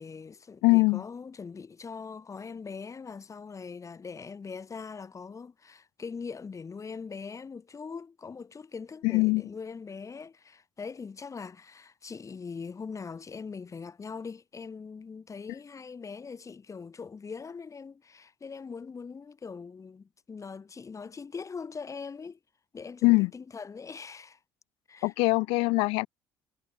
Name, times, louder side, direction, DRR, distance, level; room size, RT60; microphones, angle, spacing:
voice 1, 0.0-22.4 22.7-24.4 24.9-25.1, left 5 dB, 35° left, 3.5 m, -41 dB
voice 2, 0.6-1.0 9.0-9.4 23.0-23.3 25.0-26.1, left 25 dB, 75° left, 0.5 m, -22 dB
hypercardioid pair, 65°, 10 cm